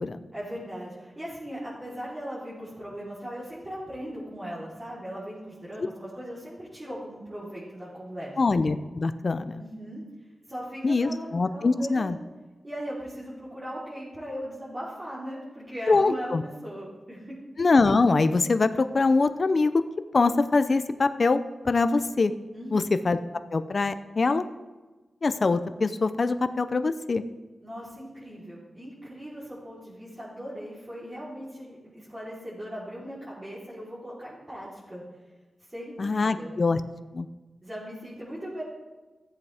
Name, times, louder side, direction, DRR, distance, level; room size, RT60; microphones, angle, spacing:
voice 1, 0.3-8.4 9.6-10.0 10.5-12.1 12.6-17.4 22.5-22.9 27.6-35.0 35.7-36.5 37.6-38.6, equal, 30° right, -10 dB, 3.6 m, -39 dB
voice 2, 8.4-9.6 10.8-12.2 15.9-16.4 17.6-19.8 20.1-21.4 21.6-22.3 22.7-23.2 23.5-24.4 25.2-27.2 36.0-36.8 37.1-37.3, left 3 dB, 55° left, 11 dB, 0.5 m, -23 dB
14.5 x 8.0 x 3.5 m, 1.2 s
cardioid pair, 65°, 0 cm